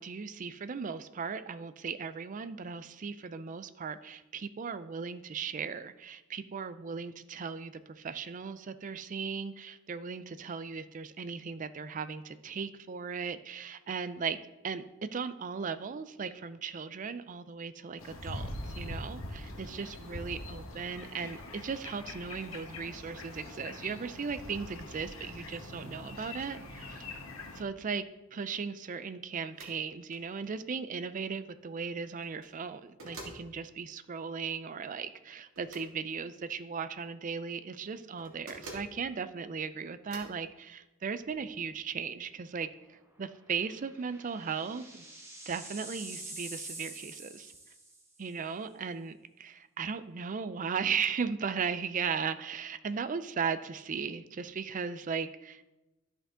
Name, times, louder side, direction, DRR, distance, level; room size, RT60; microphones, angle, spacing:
voice 1, 0.0-14.4 14.6-14.8 15.1-27.1 27.6-28.0 28.3-45.0 45.5-47.5 48.2-55.7, right 6 dB, 40° right, 12 dB, 0.4 m, -37 dB
sound 1, 18.0-27.6, left 2 dB, 80° left, 1.2 m, -43 dB
sound 2, 29.5-29.8 30.1-30.2 32.2-32.5 33.0-33.4 35.6-35.9 38.2-38.9 40.1-40.4, right 2 dB, 85° right, 2.2 m, -46 dB
sound 3, 41.3-41.6 42.0-42.1 43.5-48.2, right 2 dB, 15° right, 1.2 m, -46 dB
12.5 x 5.3 x 3.7 m, 1.0 s
head